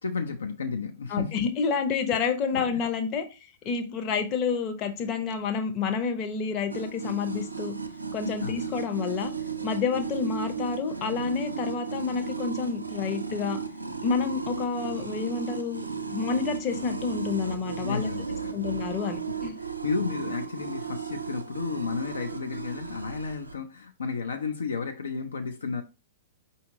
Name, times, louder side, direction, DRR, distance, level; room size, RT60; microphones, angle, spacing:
voice 1, 0.0-1.5 2.5-2.8 8.4-8.7 17.8-18.6 19.3-25.8, left 5 dB, 70° left, 0.5 m, -33 dB
voice 2, 1.1-3.2 3.6-7.7 8.1-9.3 9.6-13.6 14.0-18.1 18.5-19.6, left 5 dB, 30° left, 0.8 m, -29 dB
sound 1, 6.7-23.5, right 6 dB, 85° right, 0.5 m, -35 dB
5.0 x 2.8 x 3.6 m
figure-of-eight pair, 105°, 0 cm